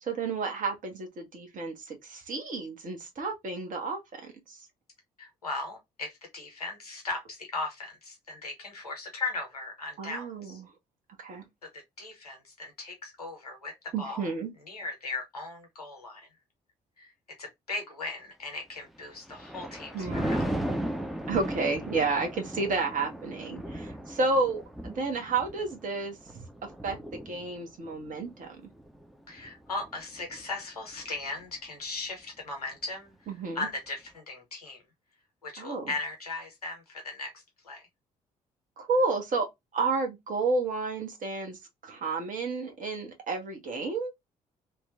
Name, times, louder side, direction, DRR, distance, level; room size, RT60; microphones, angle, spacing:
voice 1, 0.0-4.6 10.0-10.7 11.2-11.4 13.9-14.5 19.9-20.4 21.3-26.4 26.8-28.6 33.3-33.7 35.6-35.9 38.8-39.5 39.7-44.1, right 3 dB, 45° right, 1.0 m, -31 dB
voice 2, 5.2-10.6 12.0-13.7 14.0-14.3 14.7-16.3 17.0-17.1 17.4-20.4 29.3-33.1 33.5-34.8 35.4-37.3 37.6-37.8, left 3 dB, 85° left, 0.8 m, -37 dB
Thunder, 19.0-30.5 30.9-31.3, right 1 dB, ahead, 0.5 m, -37 dB
2.9 x 2.2 x 2.4 m
figure-of-eight pair, 45°, 19 cm